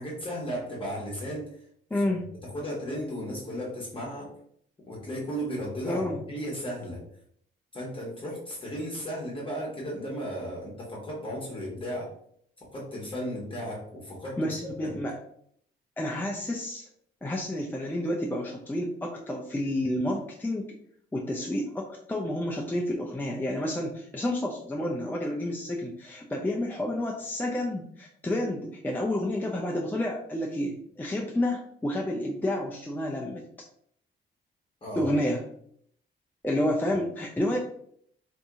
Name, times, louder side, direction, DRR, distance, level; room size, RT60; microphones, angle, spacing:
voice 1, 0.0-1.5 2.0-2.1 2.4-4.3 4.9-6.0 6.3-7.0 7.7-12.1 12.7-14.9 34.8-35.1 36.5-36.6, equal, 25° left, -4 dB, 1.1 m, -35 dB
voice 2, 1.9-2.3 5.8-6.2 14.4-15.2 16.0-16.9 17.2-20.7 21.1-33.4 35.0-35.4 36.4-37.6, left 1 dB, 10° left, -1 dB, 0.5 m, -30 dB
2.8 x 2.6 x 3.5 m, 0.66 s
cardioid pair, 90°, 20 cm